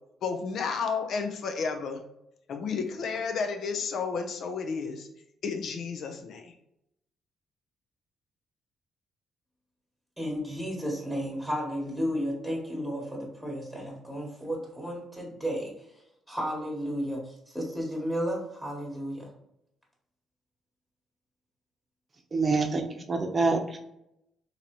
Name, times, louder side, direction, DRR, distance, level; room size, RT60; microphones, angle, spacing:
voice 1, 0.2-2.0 2.5-5.1 5.4-6.5, left 5 dB, 65° left, 5 dB, 0.6 m, -32 dB
voice 2, 10.2-15.7 16.3-19.3, equal, 5° left, -3 dB, 1.3 m, -33 dB
voice 3, 22.3-22.8 23.1-23.8, right 3 dB, 35° right, 4 dB, 0.7 m, -25 dB
3.9 x 2.9 x 3.0 m, 0.80 s
cardioid pair, 90°, 0 cm